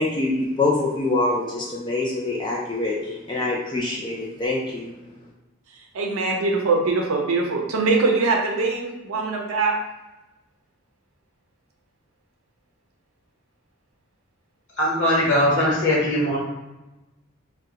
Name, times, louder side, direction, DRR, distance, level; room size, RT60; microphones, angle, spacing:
voice 1, 0.0-5.2, left 2 dB, 20° left, -3 dB, 0.4 m, -25 dB
voice 2, 5.9-9.8, right 3 dB, 90° right, 1 dB, 0.5 m, -22 dB
voice 3, 14.8-16.4, left 1 dB, 60° left, -5 dB, 1.1 m, -20 dB
2.6 x 2.2 x 3.9 m, 1.0 s
head